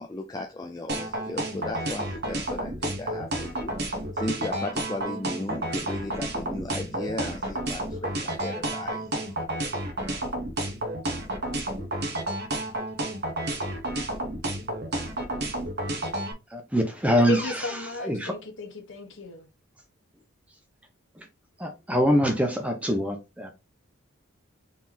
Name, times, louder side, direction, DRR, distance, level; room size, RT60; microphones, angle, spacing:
voice 1, 0.0-3.7 4.2-9.1, left 2 dB, 15° left, 0.4 m, -35 dB
sound 1, 0.9-16.3, right 1 dB, 50° right, 1.2 m, -30 dB
voice 2, 16.5-17.6 18.0-18.3 21.2-21.3 21.6-23.5, equal, 5° right, 0.8 m, -24 dB
voice 3, 17.2-19.5, left 1 dB, 55° left, 1.2 m, -34 dB
4.2 x 3.7 x 2.9 m
head